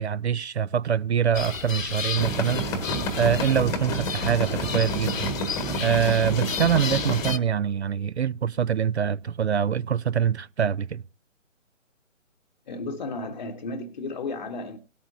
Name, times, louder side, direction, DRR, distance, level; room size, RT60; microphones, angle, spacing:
voice 1, 0.0-2.8 3.1-5.3 5.8-11.0, right 8 dB, 55° right, 0.5 m, -24 dB
sound 1, 1.3-7.4, left 6 dB, 75° left, 0.9 m, -33 dB
sound 2, 2.1-7.3, equal, 10° left, 1.4 m, -30 dB
voice 2, 12.7-14.8, left 3 dB, 35° left, 0.9 m, -33 dB
18.5 x 8.6 x 2.6 m
figure-of-eight pair, 145°, 40 cm